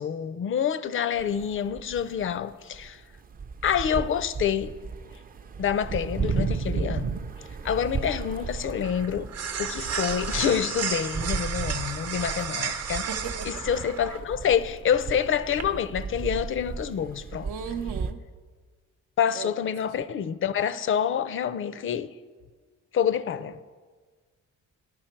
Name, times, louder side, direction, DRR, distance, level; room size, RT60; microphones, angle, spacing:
voice 1, 0.0-3.0 3.6-4.8 5.6-7.2 7.6-9.3 9.6-13.1 13.5-17.5 19.2-22.1 22.9-23.6, left 8 dB, 45° left, 0.4 m, -27 dB
sound 1, 1.2-2.4 2.7-18.1, right 5 dB, 30° right, 0.4 m, -34 dB
sound 2, 7.1-15.6, right 6 dB, 55° right, 0.8 m, -34 dB
voice 2, 13.1-13.8 17.4-18.2 19.3-19.5, right 6 dB, 85° right, 0.7 m, -36 dB
11.0 x 6.0 x 4.4 m
cardioid pair, 90°, 30 cm